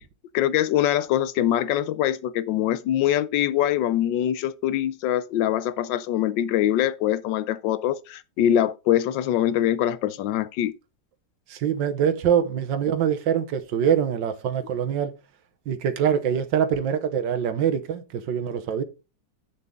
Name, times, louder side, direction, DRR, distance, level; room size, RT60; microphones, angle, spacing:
voice 1, 0.3-10.7, left 11 dB, 90° left, 1.3 m, -23 dB
voice 2, 11.5-15.1 15.7-18.8, right 8 dB, 90° right, 1.7 m, -24 dB
8.4 x 6.8 x 3.7 m
omnidirectional pair, 1.9 m